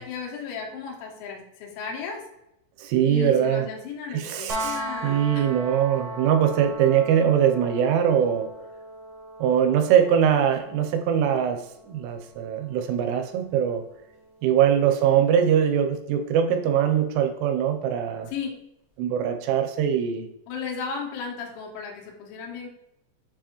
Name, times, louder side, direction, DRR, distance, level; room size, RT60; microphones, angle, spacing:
voice 1, 0.0-2.3 3.0-5.5 14.5-14.7 18.3-18.5 20.5-22.7, left 6 dB, 80° left, 0 dB, 3.5 m, -35 dB
voice 2, 2.8-3.7 4.1-8.5 9.4-13.8 14.4-18.3 19.0-20.3, right 9 dB, 85° right, 7 dB, 3.1 m, -22 dB
sound 1, 4.5-16.3 18.2-18.3, right 1 dB, 35° right, 1.7 m, -39 dB
7.3 x 4.6 x 2.9 m, 0.82 s
omnidirectional pair, 5.6 m